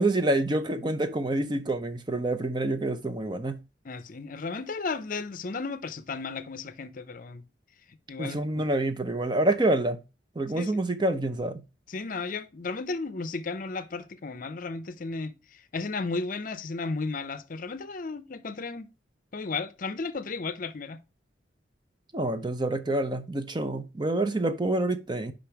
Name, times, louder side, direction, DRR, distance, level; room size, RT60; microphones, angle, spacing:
voice 1, 0.0-3.6 8.2-10.0 10.4-11.6 22.1-25.3, right 2 dB, 25° right, 0.6 m, -27 dB
voice 2, 3.8-7.4 8.1-8.6 10.5-10.7 11.9-18.9 19.3-21.0, left 4 dB, 50° left, 0.6 m, -34 dB
5.2 x 5.2 x 5.8 m
head